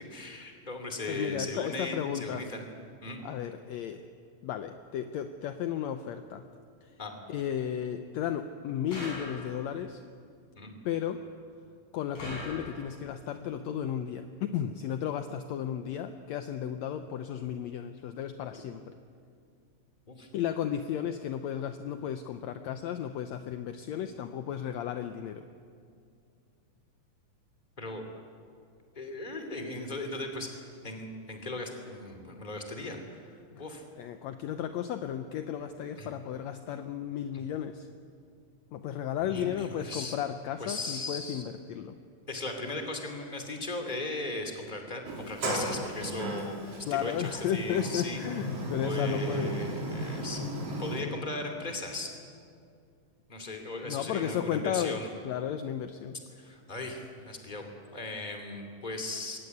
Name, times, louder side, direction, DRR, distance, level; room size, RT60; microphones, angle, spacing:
voice 1, 0.1-2.6 3.0-3.2 7.0-7.1 10.6-10.7 18.5-18.6 20.1-20.3 27.8-28.0 29.0-33.2 33.6-33.8 36.0-36.1 39.3-40.2 40.6-41.4 42.3-48.2 48.8-52.1 53.3-55.1 56.4-57.6 57.9-59.4, left 2 dB, 15° left, 4 dB, 2.3 m, -37 dB
voice 2, 1.1-2.5 3.2-4.0 4.4-6.5 6.8-6.9 7.3-10.0 10.8-11.3 11.9-18.9 20.3-25.5 33.5-33.6 34.0-37.9 38.7-42.0 46.8-49.5 53.8-56.2, left 9 dB, 80° left, 8 dB, 1.6 m, -34 dB
sound 1, 8.9-9.8 12.1-13.1, left 1 dB, 60° left, 7.3 m, -41 dB
Sliding door, 45.0-51.0, right 1 dB, 45° right, 3.8 m, -35 dB
22.0 x 17.0 x 9.5 m, 2.3 s
omnidirectional pair, 4.0 m